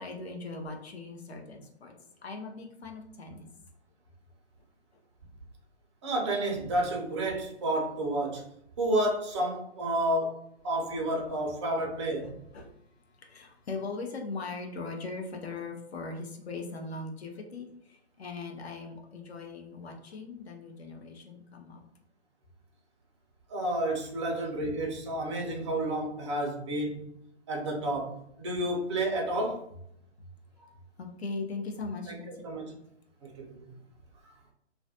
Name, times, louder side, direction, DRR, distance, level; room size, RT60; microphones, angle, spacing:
voice 1, 0.0-1.9 2.2-3.5 12.2-12.7 13.2-21.8 31.0-32.4, left 3 dB, 65° left, 3 dB, 0.7 m, -40 dB
voice 2, 6.0-8.4 8.8-12.3 23.5-27.1 27.5-29.6 30.6-30.7 32.1-32.6 33.4-33.6, right 1 dB, 25° right, 0 dB, 0.4 m, -30 dB
2.4 x 2.2 x 2.6 m, 0.74 s
figure-of-eight pair, 130°, 34 cm